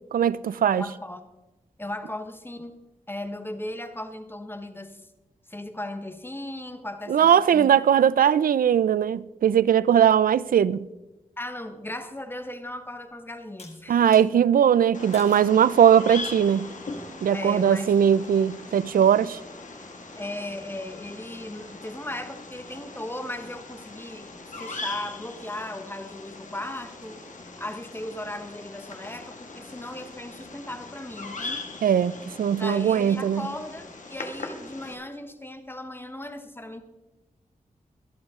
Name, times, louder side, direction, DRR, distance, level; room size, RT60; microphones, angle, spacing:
voice 1, 0.1-0.8 7.1-10.9 13.9-16.7 17.2-19.4 31.8-33.4, right 9 dB, 90° right, 0.4 m, -20 dB
voice 2, 0.7-1.3 1.8-2.7 3.1-5.0 5.5-7.7 11.4-14.0 17.3-18.0 20.2-27.2 27.6-31.6 32.6-36.8, left 1 dB, 15° left, 1.1 m, -37 dB
sound 1, 13.6-14.3 15.1-15.5 16.2-16.6, left 3 dB, 50° left, 2.4 m, -47 dB
Bird vocalization bird call bird song, 14.9-34.9, left 3 dB, 65° left, 1.9 m, -40 dB
24.0 x 8.3 x 3.7 m
wide cardioid pair, 95°, 14 cm